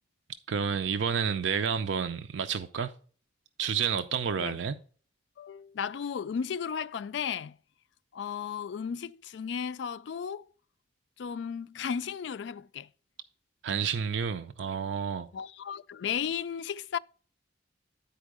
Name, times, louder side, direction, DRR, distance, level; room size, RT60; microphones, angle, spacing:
voice 1, 0.5-2.9 3.6-4.8 13.6-15.3, right 6 dB, 70° right, 0.5 m, -30 dB
voice 2, 5.4-7.6 8.1-10.5 11.2-12.9 15.3-17.0, left 7 dB, 65° left, 0.3 m, -34 dB
10.5 x 4.4 x 4.8 m
head